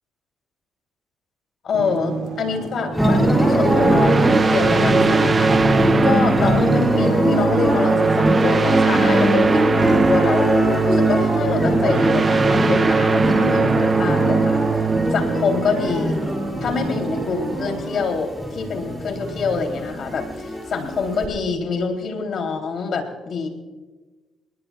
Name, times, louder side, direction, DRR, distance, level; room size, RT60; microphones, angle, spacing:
voice 1, 1.6-5.6 6.0-10.5 10.8-14.6 15.1-16.2 16.6-23.5, left 5 dB, 60° left, 4 dB, 3.3 m, -25 dB
sound 1, 1.7-17.8, right 4 dB, 80° right, 2.5 m, -32 dB
sound 2, 2.9-21.3, equal, ahead, 5.2 m, -22 dB
sound 3, 3.2-16.5, right 4 dB, 30° right, 0.7 m, -20 dB
28.5 x 20.0 x 2.4 m, 1.3 s
cardioid pair, 90°, 0 cm